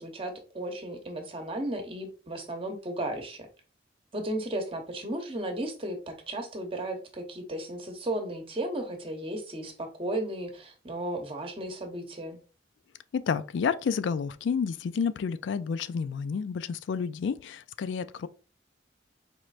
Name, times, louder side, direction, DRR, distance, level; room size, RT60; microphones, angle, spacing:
voice 1, 0.0-3.5 4.1-12.4, right 1 dB, 30° right, 0.9 m, -35 dB
voice 2, 13.1-18.3, left 6 dB, 80° left, 0.3 m, -30 dB
4.4 x 3.1 x 2.5 m
head